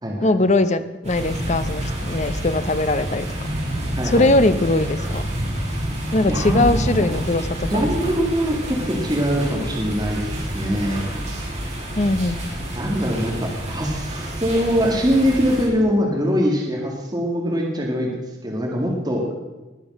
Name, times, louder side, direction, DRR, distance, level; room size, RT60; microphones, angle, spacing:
voice 1, 0.2-3.3 4.0-5.2 6.1-7.9 12.0-12.4, left 2 dB, 40° left, 12 dB, 0.8 m, -20 dB
sound 1, 1.0-15.7, right 1 dB, 40° right, 6.0 m, -28 dB
voice 2, 3.9-4.3 6.3-7.0 7.7-11.1 12.8-18.1 18.4-19.2, equal, 25° right, -2 dB, 2.3 m, -22 dB
20.5 x 7.0 x 6.3 m, 1.1 s
head